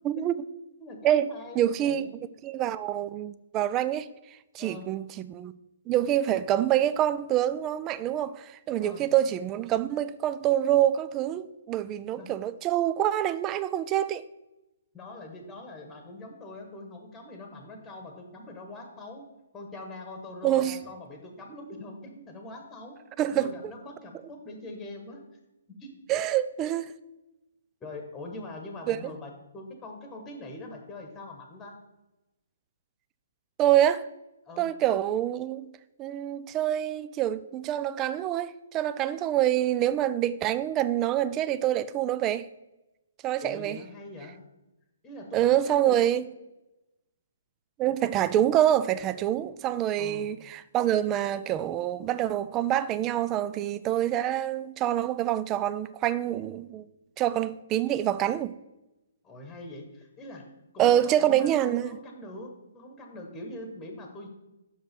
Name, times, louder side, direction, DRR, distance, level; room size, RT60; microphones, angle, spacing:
voice 1, 0.8-2.1 4.6-4.9 8.8-9.1 12.2-12.3 14.9-19.2 19.5-22.9 23.3-25.2 25.7-25.9 27.8-31.7 34.4-34.7 43.4-44.4 45.0-46.1 50.0-50.3 59.2-60.4 60.7-64.3, left 2 dB, 10° left, 1.3 m, -43 dB
voice 2, 1.6-2.1 2.4-4.1 4.5-5.5 5.9-14.3 20.4-20.8 23.2-23.5 26.1-27.0 28.9-29.1 33.6-34.1 34.6-35.7 36.0-42.5 43.2-43.8 45.3-46.3 47.8-56.9 57.2-58.5 60.8-62.0, right 12 dB, 20° right, 0.3 m, -26 dB
6.1 x 5.4 x 6.0 m
figure-of-eight pair, 130°, 0 cm